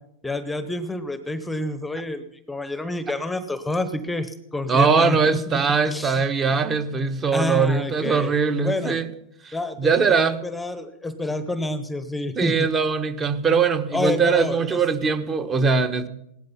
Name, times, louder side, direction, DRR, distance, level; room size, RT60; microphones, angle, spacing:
voice 1, 0.2-5.2 5.5-6.2 7.3-8.3 8.6-9.0 9.5-9.8 10.1-12.7 13.9-14.8, left 2 dB, 5° left, 11 dB, 1.0 m, -28 dB
voice 2, 4.7-9.1 9.4-10.4 12.4-16.1, right 5 dB, 25° right, 10 dB, 1.3 m, -21 dB
17.0 x 12.5 x 5.7 m, 0.79 s
supercardioid pair, 135°, 0 cm